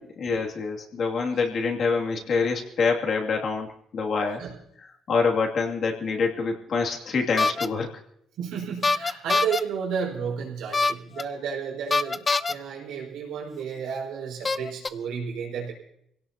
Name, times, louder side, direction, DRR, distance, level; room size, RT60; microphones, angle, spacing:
voice 1, 0.2-4.4 5.1-7.9, left 4 dB, 45° left, 0 dB, 2.5 m, -26 dB
sound 1, 7.4-7.7 8.8-9.6 10.7-11.2 11.9-12.5 13.6-13.7 14.4-14.9, left 3 dB, 20° left, 0.5 m, -23 dB
voice 2, 8.4-15.7, right 7 dB, 90° right, -1 dB, 5.1 m, -32 dB
25.5 x 17.0 x 2.9 m, 0.74 s
cardioid pair, 150°, 0 cm